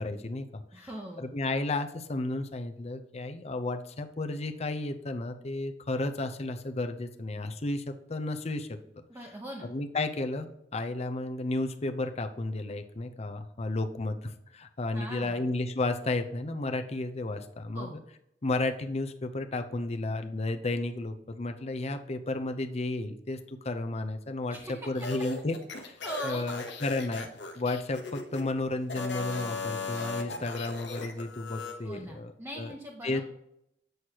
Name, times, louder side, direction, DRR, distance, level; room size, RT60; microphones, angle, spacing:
voice 1, 0.0-0.9 1.2-8.7 9.0-9.1 9.6-17.9 18.4-26.0 26.2-27.3 27.6-32.3 32.6-32.7 33.0-33.2, left 2 dB, 35° left, 7 dB, 0.6 m, -33 dB
voice 2, 0.7-1.3 9.1-9.7 14.9-15.5 17.7-18.0 24.5-24.9 25.8-26.5 31.8-33.2, right 1 dB, 15° right, -2 dB, 1.0 m, -41 dB
sound 1, 24.9-28.4 28.8-31.8, left 4 dB, 80° left, 1.1 m, -37 dB
7.9 x 6.3 x 2.9 m, 0.79 s
head